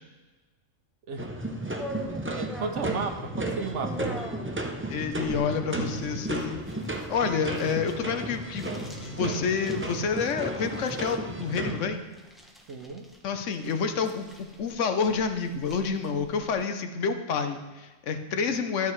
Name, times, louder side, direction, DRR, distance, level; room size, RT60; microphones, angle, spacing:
sound 1, 1.2-11.8, right 1 dB, 20° right, 0.4 m, -34 dB
sound 2, 1.8-16.5, equal, ahead, 0.9 m, -45 dB
voice 1, 2.3-4.2 12.7-13.1, right 4 dB, 65° right, 6 dB, 1.1 m, -33 dB
voice 2, 4.9-6.6 7.1-12.0 13.2-14.2 14.6-18.9, left 5 dB, 70° left, 7 dB, 1.1 m, -28 dB
13.0 x 7.6 x 3.1 m, 1.2 s
omnidirectional pair, 1.3 m